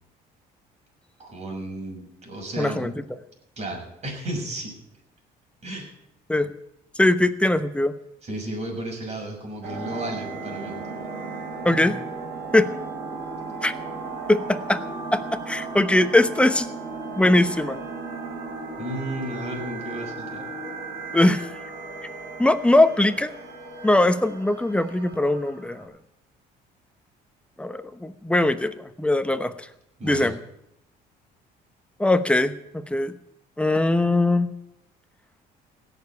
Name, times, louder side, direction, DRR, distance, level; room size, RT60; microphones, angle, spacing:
voice 1, 1.2-2.9 3.6-4.8 5.6-5.9 8.2-10.8 18.8-20.4 30.0-30.3, right 1 dB, 40° right, 1 dB, 6.4 m, -33 dB
voice 2, 2.6-2.9 6.3-6.5 7.0-7.9 11.6-12.0 12.5-12.7 13.6-13.7 14.3-14.8 15.1-16.7 17.2-17.8 21.1-21.5 22.4-23.3 23.8-25.9 27.6-29.5 30.0-30.4 32.0-32.5 32.9-33.1 33.6-34.5, left 1 dB, 5° left, 10 dB, 1.0 m, -21 dB
sound 1, 9.6-25.8, right 3 dB, 80° right, 4.3 m, -36 dB
17.0 x 7.1 x 9.5 m, 0.79 s
cardioid pair, 110°, 17 cm